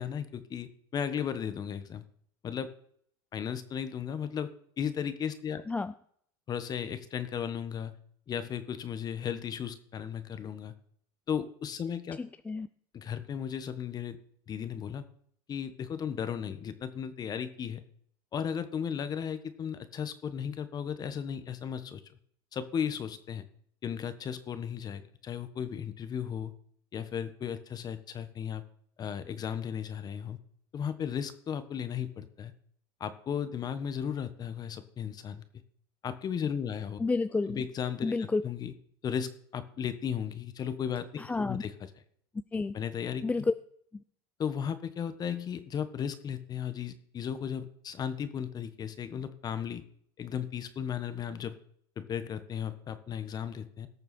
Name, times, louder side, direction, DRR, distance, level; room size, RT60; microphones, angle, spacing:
voice 1, 0.0-2.0 2.4-2.7 3.3-4.5 4.8-5.6 6.5-8.0 8.3-10.7 11.3-12.2 12.9-14.2 14.5-15.0 15.5-17.8 18.3-22.0 22.5-23.4 23.8-26.5 26.9-28.6 29.0-30.4 30.7-32.5 33.0-35.4 36.0-37.0 37.5-38.7 39.0-41.7 42.7-43.2 44.4-49.8 50.2-51.6 52.0-53.9, left 8 dB, 35° left, 12 dB, 1.3 m, -35 dB
voice 2, 12.2-12.7 37.0-37.6 38.0-38.4 41.2-41.6 42.5-42.8 43.2-43.5 43.9-44.0, left 3 dB, 10° left, 13 dB, 0.3 m, -30 dB
18.0 x 6.8 x 4.3 m, 0.64 s
supercardioid pair, 110°, 12 cm